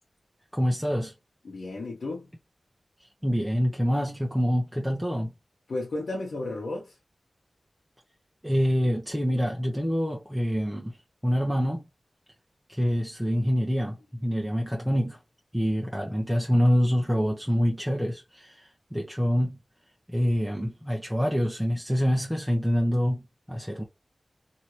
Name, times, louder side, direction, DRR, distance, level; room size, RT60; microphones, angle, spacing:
voice 1, 0.5-1.1 3.2-5.3 8.4-11.0 11.2-11.8 12.7-15.2 15.5-19.6 20.1-23.8, equal, ahead, 0.8 m, -26 dB
voice 2, 1.4-2.3 5.7-6.9, left 2 dB, 85° left, 1.0 m, -33 dB
2.9 x 2.7 x 3.0 m
wide cardioid pair, 55°, 0 cm